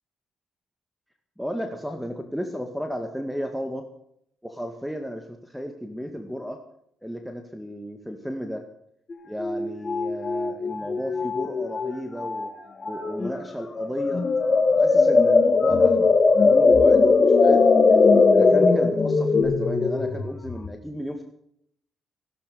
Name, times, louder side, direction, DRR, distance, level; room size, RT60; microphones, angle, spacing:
voice 1, 1.4-3.9 4.4-5.2 5.5-6.6 7.0-8.6 9.2-12.5 12.8-14.2 14.8-21.2, equal, ahead, 6 dB, 1.9 m, -33 dB
sound 1, 9.1-9.2 9.4-11.9 12.2-12.5 12.8-13.3 13.8-20.7, left 4 dB, 35° left, 2.1 m, -19 dB
16.5 x 11.5 x 6.9 m, 0.71 s
cardioid pair, 90°, 0 cm